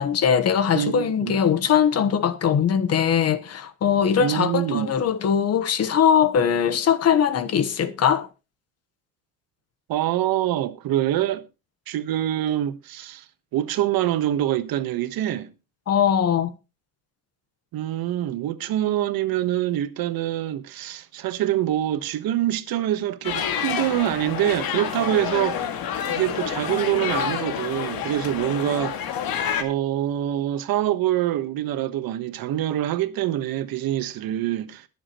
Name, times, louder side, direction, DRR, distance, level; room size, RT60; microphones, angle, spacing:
voice 1, 0.0-8.3 15.9-16.5, left 8 dB, 45° left, 1.2 m, -21 dB
voice 2, 0.7-1.4 4.2-4.9 9.9-11.4 11.9-13.2 13.5-15.5 17.7-25.7 26.1-29.0 29.6-34.9, right 13 dB, 90° right, 1.3 m, -25 dB
sound 1, 23.2-29.6, left 8 dB, 85° left, 2.1 m, -28 dB
21.5 x 7.4 x 3.0 m
cardioid pair, 175°, 35 cm